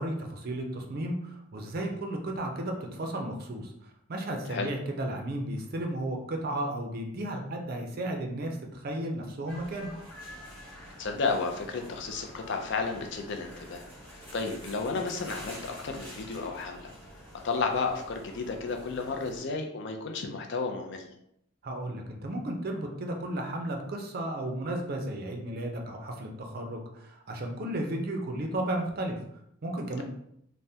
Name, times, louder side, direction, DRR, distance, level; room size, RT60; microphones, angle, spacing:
voice 1, 0.0-9.9 21.6-29.2 29.6-30.0, right 1 dB, 45° right, 3 dB, 0.4 m, -34 dB
sound 1, 9.5-19.4, equal, 10° left, 0.9 m, -47 dB
voice 2, 11.0-16.9 17.4-21.1, left 4 dB, 55° left, 4 dB, 0.4 m, -32 dB
3.3 x 2.1 x 2.7 m, 0.74 s
head